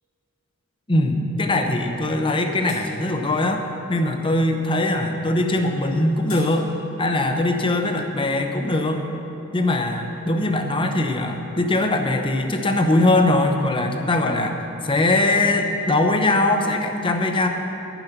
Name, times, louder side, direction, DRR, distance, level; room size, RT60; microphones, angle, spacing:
voice 1, 0.9-6.7 7.0-9.1 9.5-14.6 14.8-17.5, left 2 dB, 25° left, 5 dB, 0.8 m, -21 dB
sound 1, 2.2-2.3 2.7-2.8 5.8-6.5, left 4 dB, 75° left, 2.7 m, -40 dB
11.0 x 9.5 x 5.8 m, 2.9 s
head